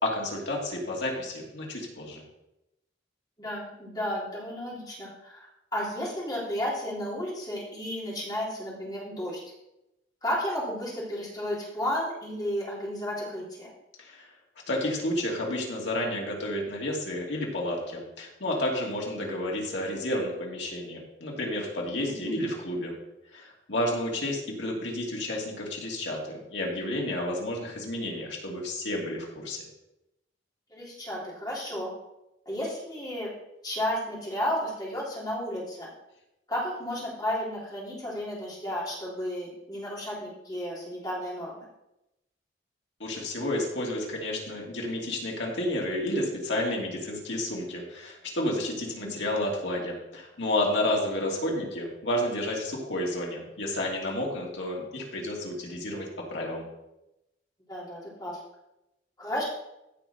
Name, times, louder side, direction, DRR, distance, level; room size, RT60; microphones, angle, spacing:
voice 1, 0.0-2.2 14.0-14.3 14.7-23.0 23.3-29.7 43.0-56.7, left 1 dB, 80° left, -1 dB, 2.7 m, -31 dB
voice 2, 3.4-9.4 10.2-13.7 22.1-22.5 30.7-31.9 32.4-33.3 33.6-35.9 36.5-41.6 49.0-49.1 57.7-58.4 59.2-59.4, equal, 20° left, -5 dB, 3.4 m, -33 dB
15.5 x 5.2 x 4.4 m, 0.91 s
head